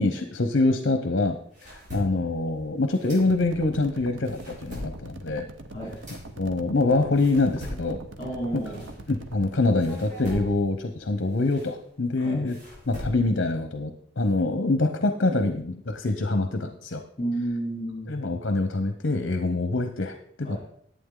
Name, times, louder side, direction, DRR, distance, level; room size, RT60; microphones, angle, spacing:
voice 1, 0.0-5.5 6.4-8.0 9.1-12.6 12.9-17.0 18.1-20.6, left 2 dB, 60° left, 8 dB, 0.8 m, -25 dB
sound 1, 1.2-3.7 4.1-9.4 9.8-13.5, left 1 dB, 40° right, 5.3 m, -42 dB
sound 2, 3.2-9.9, right 2 dB, 75° right, 0.9 m, -43 dB
voice 2, 8.2-8.9 12.2-12.5 17.2-18.1 20.4-20.6, right 1 dB, 30° left, -3 dB, 3.1 m, -31 dB
11.5 x 8.4 x 3.8 m, 0.65 s
head